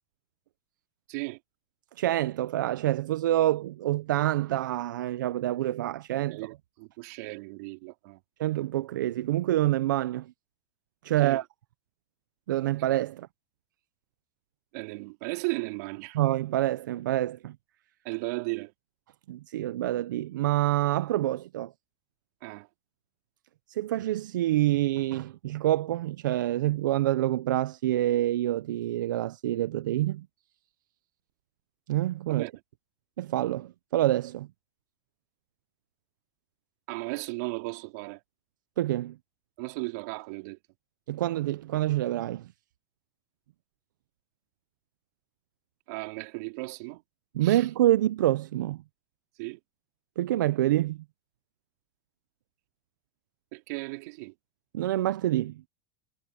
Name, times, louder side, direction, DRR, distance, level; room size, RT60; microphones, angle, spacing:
voice 1, 1.1-1.4 6.3-8.2 11.2-11.4 14.7-16.2 18.0-18.7 22.4-22.7 32.3-32.5 36.9-38.2 39.6-40.6 45.9-47.0 47.4-47.7 49.4-49.6 53.5-54.3, right 26 dB, 55° right, 3.7 m, -36 dB
voice 2, 2.0-6.4 8.4-10.3 11.0-11.4 12.5-13.3 16.1-17.6 19.3-21.7 23.7-30.3 31.9-32.4 33.2-34.5 38.8-39.2 41.1-42.5 47.3-48.8 50.2-51.0 54.7-55.6, right 14 dB, 90° right, 0.6 m, -27 dB
supercardioid pair, 155°, 10 cm